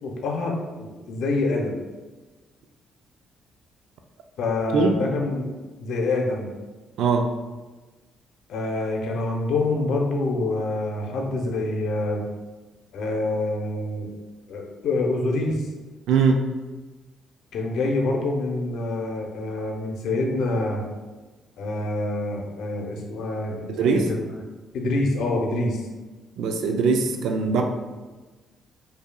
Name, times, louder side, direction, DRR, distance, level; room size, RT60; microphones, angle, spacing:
voice 1, 0.0-1.8 4.4-5.5 5.8-6.5 8.5-12.2 12.9-14.1 14.5-15.6 17.5-20.8 21.6-24.2 24.7-25.8, left 2 dB, 80° left, 0 dB, 0.7 m, -26 dB
voice 2, 16.1-16.4 23.7-24.1 26.4-27.6, right 4 dB, 80° right, 4 dB, 0.4 m, -21 dB
4.8 x 2.7 x 2.3 m, 1.2 s
cardioid pair, 90°, 0 cm